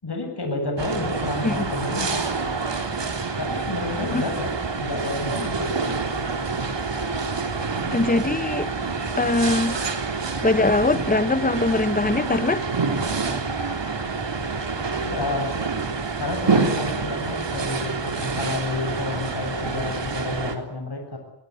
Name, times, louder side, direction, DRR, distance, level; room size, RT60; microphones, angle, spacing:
voice 1, 0.0-2.3 3.4-5.7 15.0-15.5 16.2-21.2, left 2 dB, 50° left, 4 dB, 7.6 m, -30 dB
sound 1, 0.8-20.6, right 4 dB, 60° right, 3.6 m, -27 dB
voice 2, 7.9-8.7 9.2-9.8 10.4-12.6, left 2 dB, 15° left, 14 dB, 1.2 m, -22 dB
22.0 x 21.5 x 9.8 m, 0.81 s
wide cardioid pair, 65°, 49 cm